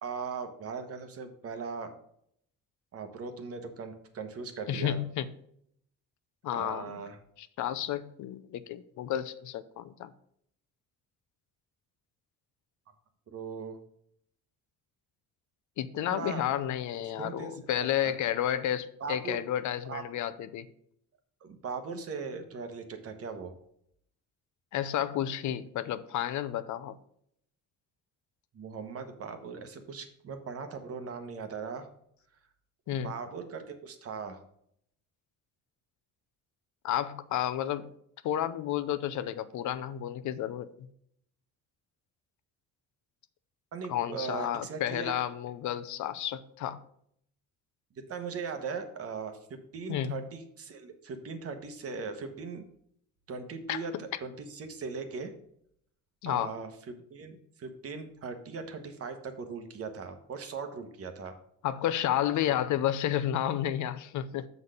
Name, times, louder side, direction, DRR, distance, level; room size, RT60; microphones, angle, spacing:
voice 1, 0.0-1.9 2.9-5.0 6.5-7.2 13.3-13.8 16.1-16.4 17.2-18.1 19.0-19.4 19.8-20.0 21.4-23.5 28.5-31.9 32.9-34.4 43.7-45.1 48.1-52.7 53.3-55.3 56.3-56.7 57.1-61.3, right 5 dB, 45° right, 7 dB, 1.1 m, -39 dB
voice 2, 4.7-5.3 6.4-6.9 7.4-10.1 15.8-20.7 24.7-27.0 32.9-33.1 36.8-37.9 38.2-40.9 43.9-46.8 49.9-50.3 53.7-53.8 56.2-56.5 61.6-64.5, left 11 dB, 65° left, 12 dB, 0.6 m, -31 dB
7.0 x 4.1 x 6.5 m, 0.69 s
cardioid pair, 135°, 32 cm